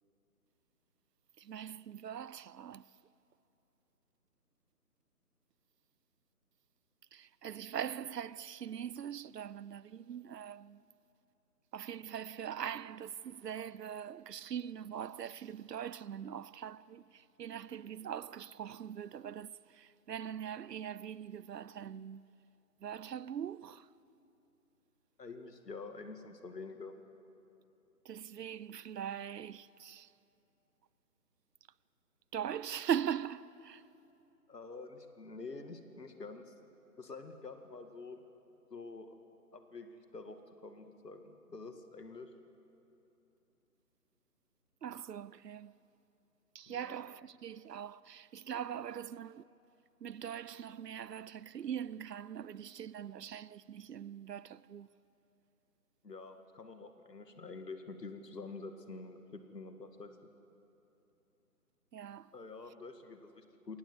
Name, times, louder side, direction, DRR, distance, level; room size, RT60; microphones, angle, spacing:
voice 1, 1.4-2.9 7.1-10.8 11.7-22.3 22.8-23.9 28.0-30.1 32.3-33.8 44.8-45.7 46.5-49.5 50.0-54.9 61.9-62.3, right 9 dB, 85° right, 0.7 m, -41 dB
voice 2, 25.2-27.0 34.5-36.5 37.0-38.2 38.7-39.2 39.5-42.3 46.7-47.0 56.0-60.1 62.3-63.8, left 3 dB, 85° left, 2.3 m, -47 dB
22.0 x 18.5 x 8.0 m
hypercardioid pair, 170°, 47 cm